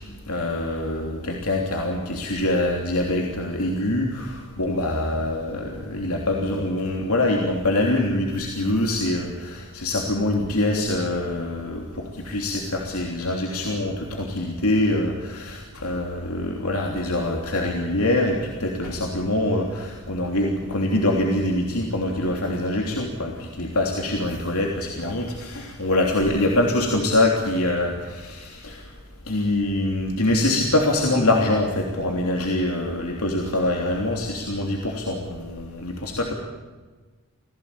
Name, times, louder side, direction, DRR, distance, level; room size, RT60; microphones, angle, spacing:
voice 1, 0.3-28.8 29.3-36.3, left 1 dB, 75° left, 1 dB, 3.2 m, -24 dB
27.5 x 17.0 x 8.7 m, 1.4 s
head